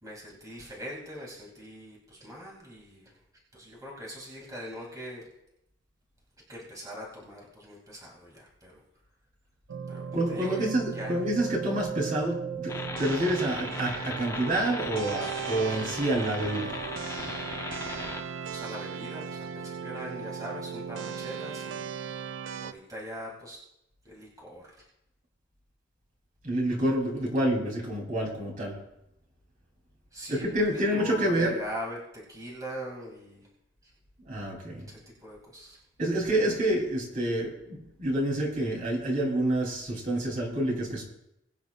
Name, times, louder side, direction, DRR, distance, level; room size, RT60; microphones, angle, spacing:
voice 1, 0.0-3.2 3.5-5.2 6.5-8.8 9.9-10.7 10.9-11.1 18.5-21.9 22.6-23.6 24.0-24.8 30.1-33.5 33.8-33.9 34.9-35.8 36.2-36.4, equal, 20° right, -4 dB, 2.6 m, -42 dB
sound 1, 9.7-22.7, right 7 dB, 80° right, 0.5 m, -37 dB
voice 2, 10.1-16.8 26.4-28.8 30.3-31.6 34.2-34.9 36.0-41.0, right 1 dB, 45° right, -2 dB, 3.4 m, -28 dB
sound 2, 12.7-18.2, left 3 dB, 15° left, 0.6 m, -38 dB
21.5 x 9.2 x 2.5 m, 0.83 s
head